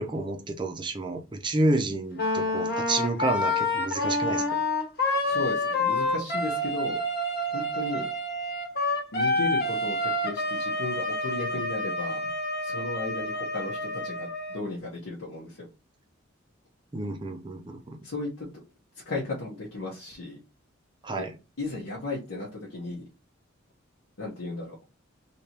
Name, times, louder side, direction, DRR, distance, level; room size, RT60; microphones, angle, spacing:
voice 1, 0.0-4.4 16.9-18.0 21.0-21.3, right 2 dB, 25° right, 0.5 m, -29 dB
Wind instrument woodwind instrument, 2.1-14.6, left 2 dB, 50° left, 1.1 m, -28 dB
voice 2, 5.2-7.0 7.5-8.1 9.1-12.2 12.6-15.7 18.0-18.3 19.1-20.4 21.2-21.3 21.6-23.0 24.2-24.8, left 2 dB, 75° left, 1.0 m, -35 dB
3.4 x 2.8 x 2.9 m
head